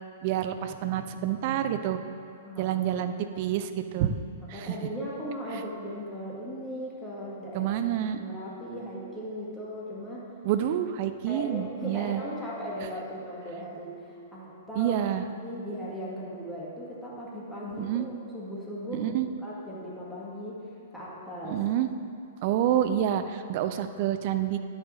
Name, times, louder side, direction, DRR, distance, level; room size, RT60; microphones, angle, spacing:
voice 1, 0.2-2.0 2.6-4.2 4.5-4.8 5.5-5.6 7.5-8.2 10.4-12.2 14.7-15.2 17.8-18.1 18.9-19.3 21.4-21.9 22.4-24.6, right 11 dB, 45° right, 9 dB, 0.5 m, -28 dB
voice 2, 4.5-7.8 8.1-10.3 11.3-15.0 15.4-19.1 19.4-20.6 20.9-21.6, equal, 5° left, -7 dB, 2.0 m, -37 dB
10.5 x 8.8 x 2.8 m, 2.4 s
figure-of-eight pair, 110°, 0 cm